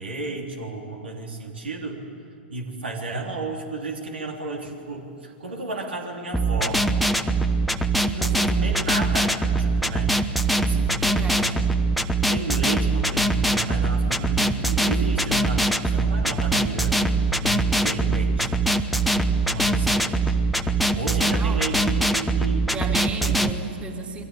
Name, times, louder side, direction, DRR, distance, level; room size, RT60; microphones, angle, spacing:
voice 1, 0.0-2.0 2.5-6.9 8.1-10.2 10.6-11.6 12.3-17.0 17.4-18.5 19.5-20.4 20.9-22.7 23.2-23.4 23.7-23.8, right 3 dB, 75° right, 1 dB, 3.5 m, -33 dB
sound 1, 6.3-23.5, right 2 dB, ahead, 1.0 m, -22 dB
voice 2, 10.9-11.6 21.3-21.6 22.6-24.2, right 5 dB, 20° right, 2 dB, 3.2 m, -34 dB
28.5 x 22.0 x 8.3 m, 2.6 s
figure-of-eight pair, 100°, 6 cm